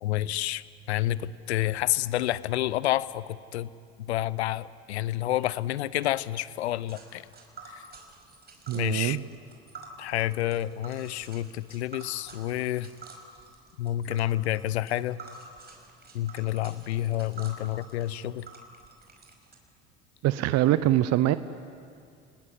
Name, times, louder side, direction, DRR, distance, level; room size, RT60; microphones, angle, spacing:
voice 1, 0.0-3.7 4.0-7.3 7.7-7.8 8.7-9.2 10.0-12.9 13.8-15.2 16.1-18.5, left 14 dB, 80° left, 19 dB, 0.7 m, -29 dB
Tick, 6.9-19.5, right 3 dB, 30° right, 5.3 m, -49 dB
voice 2, 8.7-9.2 20.2-21.4, right 14 dB, 50° right, 14 dB, 0.9 m, -23 dB
30.0 x 19.5 x 9.6 m, 2.4 s
hypercardioid pair, 65°, 32 cm